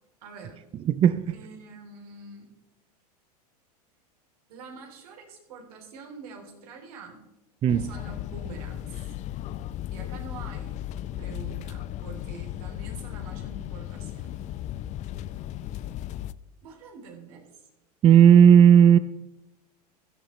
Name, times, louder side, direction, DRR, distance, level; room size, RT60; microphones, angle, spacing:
voice 1, 0.2-0.6 1.3-2.5 4.5-7.2 7.8-8.9 9.9-10.8 11.2-14.5 16.6-17.5, right 5 dB, 65° right, 3.3 m, -45 dB
voice 2, 0.9-1.4 7.6-7.9 18.0-19.0, right 8 dB, 25° right, 0.5 m, -15 dB
sound 1, 7.7-16.3, left 12 dB, 35° left, 0.5 m, -36 dB
16.5 x 12.5 x 3.2 m
hypercardioid pair, 95°, 20 cm